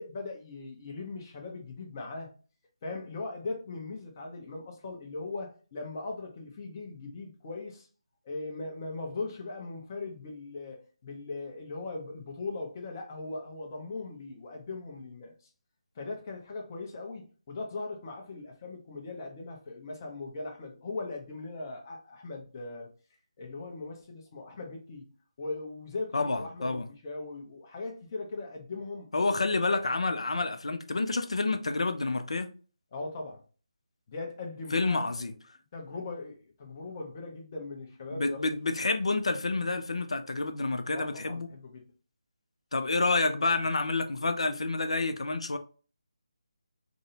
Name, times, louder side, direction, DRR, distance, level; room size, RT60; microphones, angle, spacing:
voice 1, 0.0-2.3 2.8-7.9 8.2-15.3 16.0-22.9 23.4-25.0 25.4-29.1 32.9-33.4 34.1-35.1 35.7-38.5 40.9-41.9 43.2-43.5, left 3 dB, 30° left, 0.6 m, -39 dB
voice 2, 26.1-26.9 29.1-32.5 34.7-35.3 38.1-41.5 42.7-45.6, left 3 dB, 70° left, 0.4 m, -29 dB
2.5 x 2.0 x 2.7 m
figure-of-eight pair, 155°, 3 cm